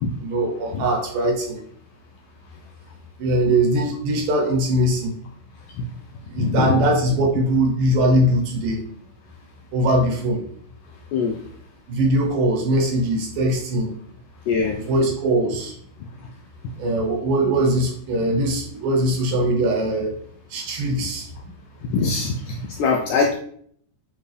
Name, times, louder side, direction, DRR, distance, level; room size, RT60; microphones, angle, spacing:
voice 1, 0.2-1.6 3.2-5.1 6.3-8.8 9.7-10.4 11.9-13.9 14.9-15.7 16.8-20.2 20.5-21.3, right 1 dB, 70° right, 1 dB, 2.8 m, -21 dB
voice 2, 6.4-6.8 11.1-11.4 14.5-14.8 21.9-23.3, left 4 dB, 80° left, 1 dB, 1.8 m, -22 dB
8.9 x 3.3 x 3.3 m, 0.63 s
omnidirectional pair, 4.2 m